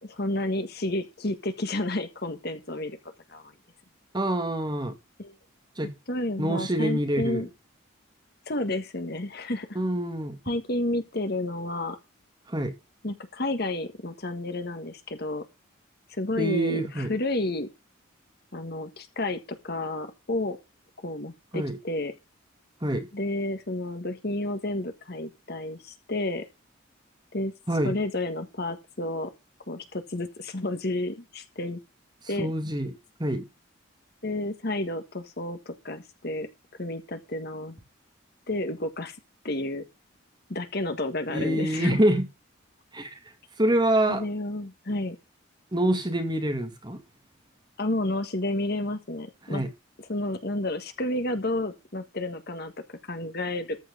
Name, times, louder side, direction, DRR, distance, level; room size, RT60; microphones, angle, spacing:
voice 1, 0.0-3.0 3.3-3.5 5.2-5.3 6.1-7.5 8.5-9.8 10.4-12.0 13.0-15.4 16.2-17.7 18.5-20.6 21.0-22.1 23.1-26.4 27.3-27.5 27.8-29.3 29.7-31.8 32.3-32.5 34.2-36.5 36.8-37.8 38.5-39.2 39.4-39.8 40.5-42.0 44.1-45.2 47.8-49.6 50.1-53.8, left 2 dB, 50° left, 1.6 m, -31 dB
voice 2, 4.1-4.9 5.8-5.9 6.4-7.5 9.8-10.4 12.5-12.7 16.4-17.1 21.5-21.8 22.8-23.1 27.7-28.0 32.4-32.9 33.2-33.5 41.3-42.3 42.9-43.2 43.6-44.3 45.7-47.0 49.5-49.7, right 1 dB, 20° right, 2.2 m, -26 dB
14.0 x 4.9 x 8.0 m
head